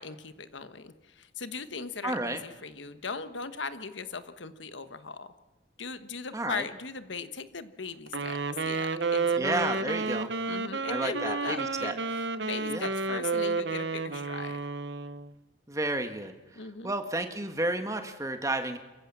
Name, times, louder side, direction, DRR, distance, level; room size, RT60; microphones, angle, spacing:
voice 1, 0.0-5.3 5.8-9.4 9.8-9.9 10.5-14.6 16.6-16.9, left 4 dB, 75° left, 11 dB, 1.3 m, -39 dB
voice 2, 2.0-2.4 6.3-6.7 9.4-10.3 10.9-11.9 12.7-12.9 15.7-18.8, right 2 dB, 15° right, 7 dB, 1.6 m, -32 dB
Wind instrument woodwind instrument, 8.1-15.3, right 4 dB, 65° right, 1.0 m, -31 dB
28.0 x 15.0 x 7.4 m, 1.2 s
head